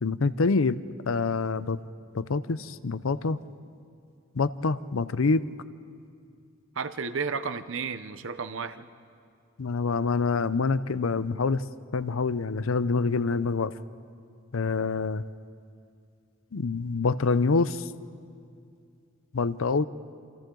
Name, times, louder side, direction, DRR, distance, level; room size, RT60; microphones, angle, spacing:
voice 1, 0.0-0.8 1.0-1.8 2.1-3.4 4.4-5.4 9.6-11.6 11.9-13.7 14.5-15.2 16.5-17.8 19.3-19.9, left 4 dB, 75° left, 15 dB, 0.6 m, -26 dB
voice 2, 6.8-8.9, right 5 dB, 65° right, 11 dB, 0.8 m, -32 dB
28.5 x 27.5 x 3.9 m, 2.4 s
head